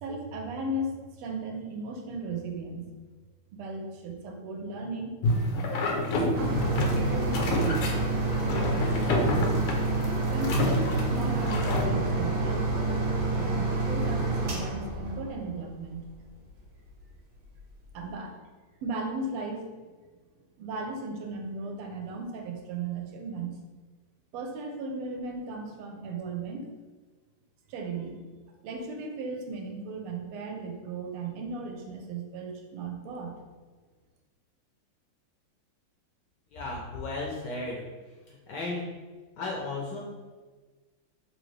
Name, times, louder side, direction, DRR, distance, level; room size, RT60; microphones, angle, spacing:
voice 1, 0.0-2.9 3.5-5.1 6.3-7.9 10.3-16.1 17.9-18.4 18.8-19.9 20.6-23.5 24.3-26.7 27.7-28.2 28.6-33.4, right 2 dB, 85° right, 3 dB, 1.5 m, -36 dB
sound 1, 5.2-11.9, left 1 dB, 90° left, 1.6 m, -28 dB
sound 2, 6.3-15.8 16.5-16.6 17.0-17.1, right 3 dB, 65° right, 1.3 m, -28 dB
voice 2, 36.5-37.8 38.3-38.8 39.4-40.0, left 2 dB, 75° left, -3 dB, 1.0 m, -34 dB
3.7 x 2.7 x 3.1 m, 1.4 s
omnidirectional pair, 2.3 m